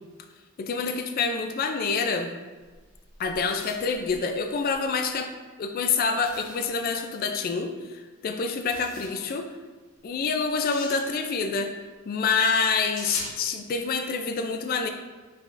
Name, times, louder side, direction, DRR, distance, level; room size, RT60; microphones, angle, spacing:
voice 1, 0.6-2.3 3.2-5.3 5.6-7.7 8.2-9.5 10.0-11.7 12.1-14.9, left 5 dB, 45° left, 5 dB, 0.3 m, -27 dB
sound 1, 2.6-4.8 6.2-6.8 8.5-9.2 10.4-11.0 13.0-13.4, left 2 dB, 70° left, 1.1 m, -41 dB
5.1 x 3.5 x 2.5 m, 1.3 s
head